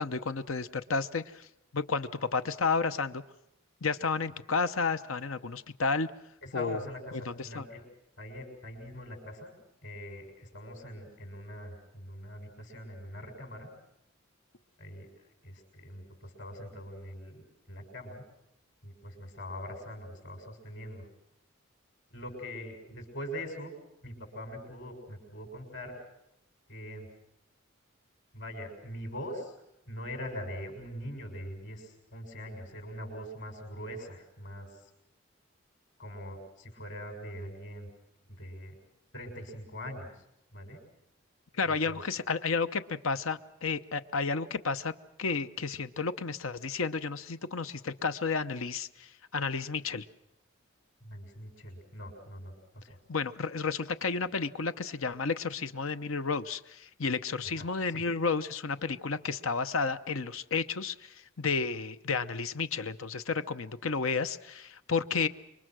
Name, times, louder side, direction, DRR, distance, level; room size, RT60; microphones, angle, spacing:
voice 1, 0.0-1.5 1.7-3.2 3.8-6.1 6.5-6.8 7.1-7.7 41.6-44.9 45.2-50.1 53.1-65.3, left 4 dB, 75° left, 11 dB, 0.8 m, -32 dB
voice 2, 6.4-7.8 8.2-9.5 9.8-13.7 14.8-15.1 15.4-18.2 18.8-21.0 22.1-23.7 24.0-26.0 26.7-27.1 28.3-29.5 29.8-34.8 36.0-37.9 38.2-38.8 39.1-40.2 40.5-40.8 41.7-42.0 51.0-53.0 57.5-58.0, equal, 60° left, 4 dB, 6.6 m, -42 dB
27.0 x 23.5 x 6.2 m, 0.82 s
head